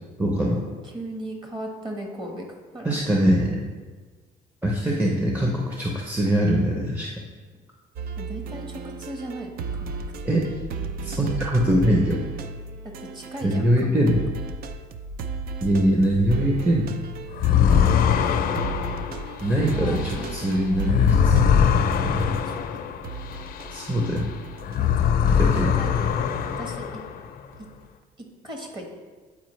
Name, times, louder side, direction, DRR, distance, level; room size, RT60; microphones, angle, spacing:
voice 1, 0.2-0.6 2.8-3.6 4.6-7.1 10.2-10.5 11.0-12.2 13.4-14.2 15.6-16.9 19.4-21.5 22.0-22.3 23.7-24.3 25.4-25.8, equal, 10° right, -2 dB, 0.7 m, -22 dB
voice 2, 0.8-2.5 2.7-2.9 8.2-10.3 13.1-14.0 19.7-21.5 22.4-22.9 24.8-25.5 25.8-26.9 28.2-28.9, right 1 dB, 30° right, 2 dB, 1.3 m, -37 dB
sound 1, 8.0-13.8 14.1-22.7 23.0-26.2 27.5-27.8, right 4 dB, 60° right, 0.5 m, -35 dB
sound 2, 17.3-24.3 24.6-27.3, left 7 dB, 60° left, 0.5 m, -22 dB
8.4 x 4.4 x 3.1 m, 1.4 s
cardioid pair, 110°, 17 cm